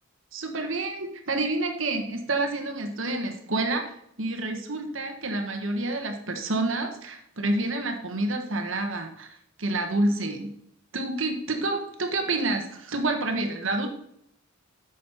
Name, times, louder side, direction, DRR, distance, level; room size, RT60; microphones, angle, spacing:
voice 1, 0.3-3.8 4.2-10.5 10.9-13.9, right 2 dB, 65° right, 4 dB, 1.5 m, -28 dB
9.3 x 6.5 x 4.6 m, 0.73 s
head